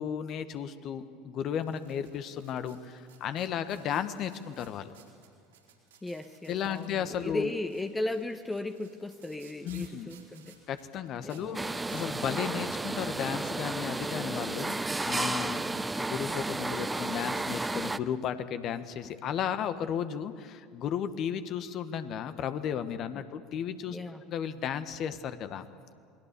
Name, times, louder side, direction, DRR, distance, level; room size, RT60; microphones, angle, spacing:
voice 1, 0.0-4.9 6.5-7.5 9.6-10.1 10.7-15.6 16.0-24.0 24.3-25.6, left 8 dB, 50° left, 10 dB, 1.5 m, -34 dB
sound 1, 1.6-12.3, right 7 dB, 80° right, 4.0 m, -59 dB
voice 2, 6.0-10.6 11.2-11.6 23.9-24.2, left 2 dB, 15° left, 7 dB, 1.2 m, -36 dB
sound 2, 11.5-18.0, right 2 dB, 10° right, 0.7 m, -32 dB
27.5 x 21.0 x 7.0 m, 2.3 s
figure-of-eight pair, 70°, 0 cm